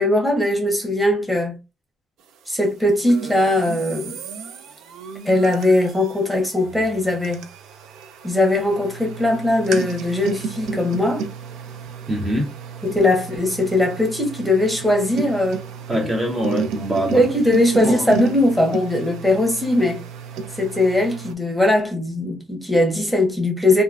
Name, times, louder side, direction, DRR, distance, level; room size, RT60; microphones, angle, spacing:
voice 1, 0.0-1.6 2.5-4.1 5.2-7.4 8.2-11.2 12.8-15.6 17.1-20.0 20.6-23.8, left 1 dB, ahead, 1.1 m, -19 dB
sound 1, 3.1-21.3, right 5 dB, 85° right, 0.4 m, -32 dB
voice 2, 12.1-12.5 15.9-17.2 17.8-18.1, right 1 dB, 30° right, 0.9 m, -23 dB
3.0 x 2.4 x 2.3 m
cardioid pair, 90°, 0 cm